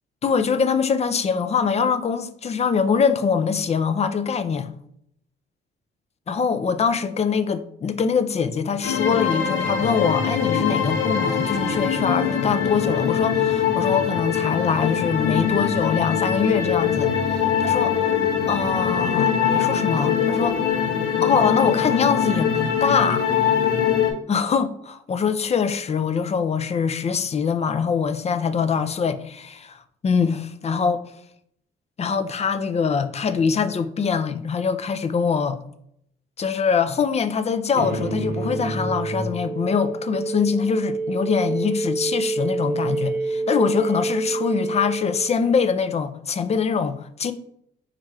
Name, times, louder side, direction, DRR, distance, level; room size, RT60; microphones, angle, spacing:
voice 1, 0.2-4.7 6.3-17.9 18.5-20.6 21.2-23.3 24.3-31.0 32.0-35.6 36.4-47.3, left 6 dB, 35° left, 0.4 m, -23 dB
sound 1, 8.8-24.1, left 7 dB, 85° left, 0.7 m, -22 dB
sound 2, 37.7-45.7, right 3 dB, 60° right, 0.8 m, -27 dB
4.3 x 2.5 x 4.6 m
cardioid pair, 90°, 20 cm